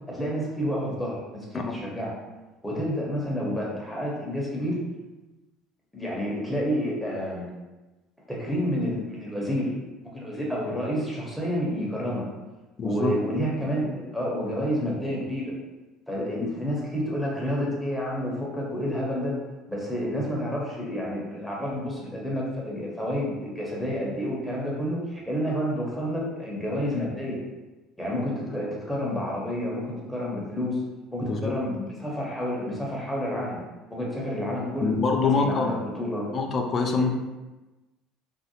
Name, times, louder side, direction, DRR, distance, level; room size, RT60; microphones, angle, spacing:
voice 1, 0.1-2.1 2.6-4.8 5.9-7.5 8.3-9.7 10.0-12.3 12.8-15.5 16.1-19.4 19.7-27.4 28.0-30.8 31.1-33.6 33.9-34.9 35.3-36.3 37.0-37.1, equal, 5° left, -4 dB, 0.9 m, -29 dB
voice 2, 12.8-13.1 31.2-31.5 34.8-35.8 36.3-37.1, left 4 dB, 40° left, 3 dB, 0.4 m, -25 dB
2.6 x 2.0 x 2.8 m, 1.1 s
hypercardioid pair, 70°, 0 cm